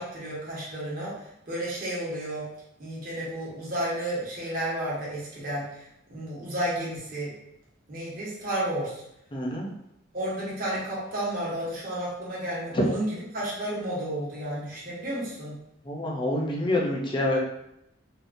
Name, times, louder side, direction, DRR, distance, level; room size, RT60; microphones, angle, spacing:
voice 1, 0.0-2.5 2.8-7.4 7.9-9.0 10.1-15.6, right 1 dB, 45° right, -6 dB, 1.1 m, -32 dB
voice 2, 9.3-9.7 15.9-17.4, left 1 dB, 25° left, -2 dB, 0.5 m, -27 dB
3.6 x 2.2 x 2.6 m, 0.80 s
head